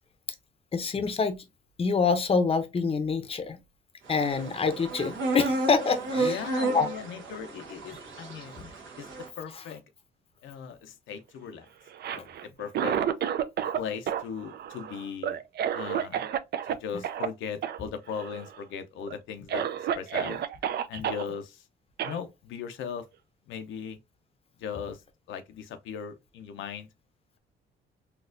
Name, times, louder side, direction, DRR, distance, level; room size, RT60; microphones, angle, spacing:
voice 1, 0.7-1.4 1.8-3.6 4.1-6.4 6.7-6.9 8.6-8.7, left 5 dB, 30° left, 0.6 m, -26 dB
sound 1, 4.1-9.3, right 3 dB, 75° right, 1.1 m, -32 dB
voice 2, 6.2-8.6 9.0-9.1 9.4-9.8 10.4-11.7 12.1-13.0 13.7-15.4 15.7-16.3 16.7-20.4 20.9-21.7 22.0-23.1 23.5-24.0 24.6-25.0 25.3-26.9, left 7 dB, 75° left, 0.5 m, -38 dB
Cough, 11.9-13.8 14.1-16.7 17.0-17.3 17.6-17.8 18.1-18.6 19.1-19.2 19.5-21.2 22.0-22.2, right 9 dB, 55° right, 0.4 m, -30 dB
4.1 x 2.3 x 2.5 m
cardioid pair, 90°, 20 cm